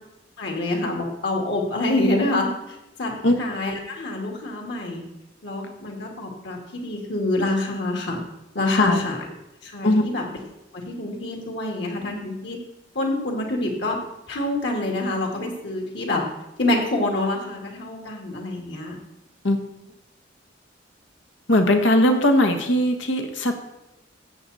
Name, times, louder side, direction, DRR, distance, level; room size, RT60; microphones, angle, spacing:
voice 1, 0.4-2.5 3.0-3.1 3.4-5.0 5.4-8.2 8.5-9.2 9.6-10.4 10.7-12.6 12.9-14.0 14.3-16.2 16.6-19.0, left 2 dB, 65° left, 1 dB, 2.3 m, -26 dB
voice 2, 8.7-9.0 9.8-10.0 19.4-19.6 21.5-23.5, left 1 dB, 85° left, 5 dB, 1.4 m, -19 dB
13.5 x 8.3 x 4.2 m, 0.92 s
head